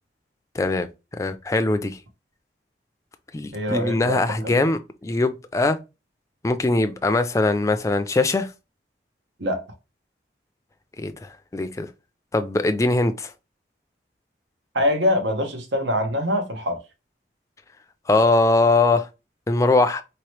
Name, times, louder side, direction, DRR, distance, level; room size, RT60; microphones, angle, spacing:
voice 1, 0.5-0.9 1.1-2.0 3.3-5.8 6.4-8.5 11.0-11.9 12.3-13.3 18.1-19.1 19.5-20.0, left 2 dB, 15° left, 0.3 m, -21 dB
voice 2, 3.5-4.5 9.4-9.6 14.7-16.8, left 1 dB, 85° right, 1.1 m, -24 dB
4.3 x 2.9 x 3.1 m
head